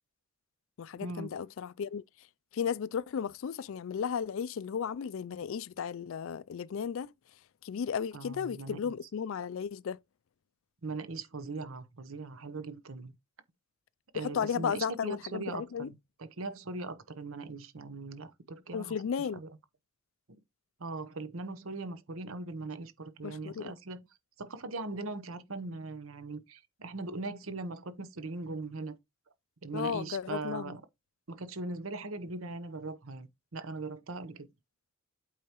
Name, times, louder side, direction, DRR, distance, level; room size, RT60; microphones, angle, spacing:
voice 1, 0.8-2.0 2.5-7.1 7.6-10.0 14.1-15.9 18.7-19.4 23.2-23.7 29.7-30.8, left 7 dB, 65° left, 0.3 m, -34 dB
voice 2, 8.1-9.0 10.8-13.1 14.1-19.0 19.3-19.5 20.8-24.0 24.4-29.0 29.6-30.8 31.3-34.5, right 3 dB, 70° right, 0.9 m, -40 dB
8.5 x 4.7 x 3.0 m
head